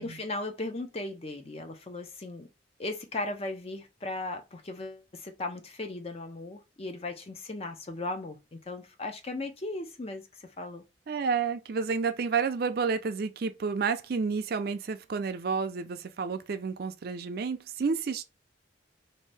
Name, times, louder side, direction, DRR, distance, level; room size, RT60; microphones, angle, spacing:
voice 1, 0.0-2.5 2.8-10.8, left 2 dB, 30° left, 0.5 m, -37 dB
voice 2, 11.1-18.2, right 5 dB, 55° right, 0.4 m, -30 dB
2.7 x 2.6 x 3.2 m
head